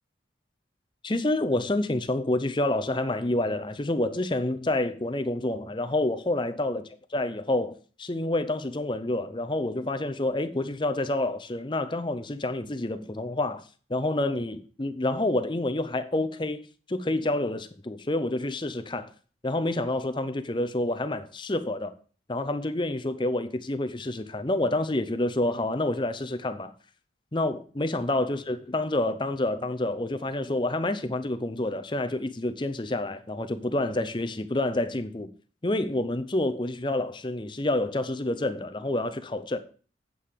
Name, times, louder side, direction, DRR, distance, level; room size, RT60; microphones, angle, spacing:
voice 1, 1.0-13.6 13.9-16.6 16.9-19.1 19.4-21.9 22.3-26.7 27.3-35.3 35.6-39.6, left 2 dB, 25° left, 0.7 m, -28 dB
8.5 x 5.7 x 6.6 m
head